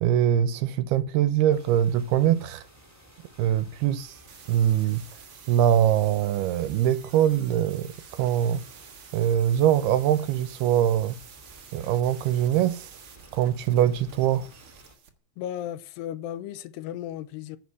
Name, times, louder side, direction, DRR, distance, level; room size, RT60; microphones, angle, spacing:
voice 1, 0.0-2.6 3.4-4.2 4.5-5.0 5.5-8.6 9.1-11.2 11.7-12.9 13.3-14.5, right 10 dB, 75° right, 2.7 m, -23 dB
sound 1, 1.5-14.9, right 1 dB, 5° right, 2.9 m, -54 dB
sound 2, 4.0-15.1, right 7 dB, 60° right, 1.3 m, -50 dB
voice 2, 15.4-17.6, left 11 dB, 85° left, 2.8 m, -35 dB
11.0 x 6.1 x 8.2 m
omnidirectional pair, 4.8 m